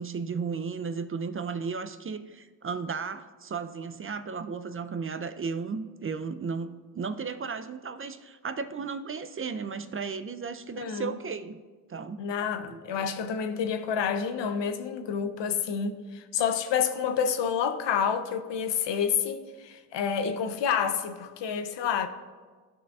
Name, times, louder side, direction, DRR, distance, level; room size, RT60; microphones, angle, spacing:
voice 1, 0.0-11.6 11.9-12.2 12.7-13.0, right 5 dB, 30° right, 0.4 m, -34 dB
voice 2, 10.8-11.2 12.2-22.1, left 7 dB, 75° left, 0.7 m, -29 dB
14.0 x 4.8 x 2.3 m
supercardioid pair, 50°, 43 cm